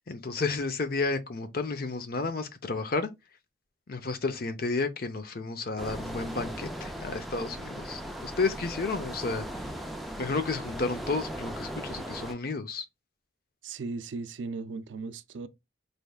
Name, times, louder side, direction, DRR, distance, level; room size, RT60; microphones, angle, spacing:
voice 1, 0.1-3.1 3.9-9.8 10.2-12.8, left 3 dB, 50° left, 0.6 m, -32 dB
sound 1, 5.8-12.3, equal, ahead, 0.4 m, -38 dB
voice 2, 13.6-15.5, right 4 dB, 75° right, 0.4 m, -37 dB
4.1 x 3.4 x 2.3 m
head